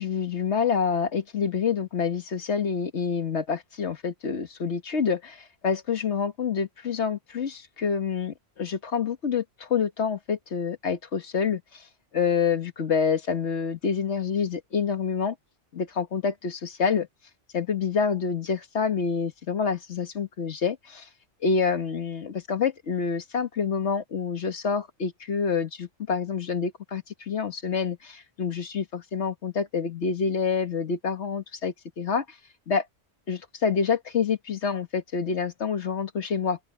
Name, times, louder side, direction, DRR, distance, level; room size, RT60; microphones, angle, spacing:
voice 1, 0.0-5.4 5.6-11.6 12.1-15.3 15.7-17.1 17.5-21.0 21.4-32.2 32.7-32.8 33.3-36.6, left 6 dB, 70° left, 1.7 m, -27 dB
open air
omnidirectional pair, 1.2 m